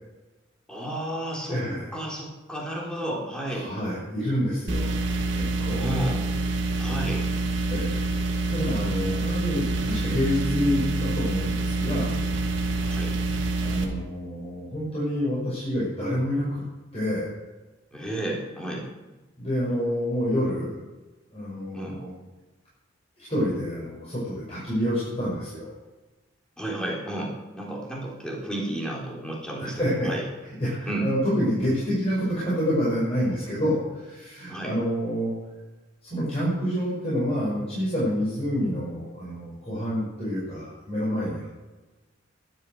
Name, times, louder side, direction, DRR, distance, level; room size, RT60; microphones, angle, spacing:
voice 1, 0.7-1.6 1.9-3.7 5.7-6.2 6.8-7.2 10.0-10.2 12.9-13.1 17.9-18.9 21.7-22.0 26.6-29.7 30.1-30.2 30.9-31.1 34.5-34.7, right 1 dB, 5° left, -3 dB, 3.5 m, -32 dB
voice 2, 1.5-2.0 3.5-5.1 5.3-5.9 7.7-8.0 8.4-12.2 13.6-16.6 16.9-17.3 19.4-20.7 21.3-22.1 23.2-25.7 29.6-30.1 30.6-35.3 36.0-41.5, equal, 30° left, -9 dB, 6.0 m, -28 dB
sound 1, 4.7-13.8, right 2 dB, 65° right, 2.6 m, -27 dB
12.5 x 12.0 x 6.5 m, 1.2 s
head